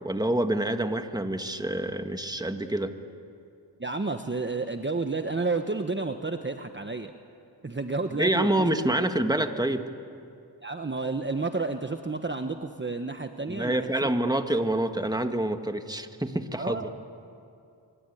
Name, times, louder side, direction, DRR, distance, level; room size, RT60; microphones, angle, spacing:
voice 1, 0.0-2.9 8.2-9.8 13.5-16.9, right 1 dB, 10° right, 7 dB, 1.6 m, -27 dB
voice 2, 3.8-7.1 7.6-8.7 10.6-13.9 16.6-16.9, right 3 dB, 25° right, 6 dB, 1.2 m, -31 dB
25.0 x 23.5 x 9.3 m, 2.5 s
cardioid pair, 60°, 45 cm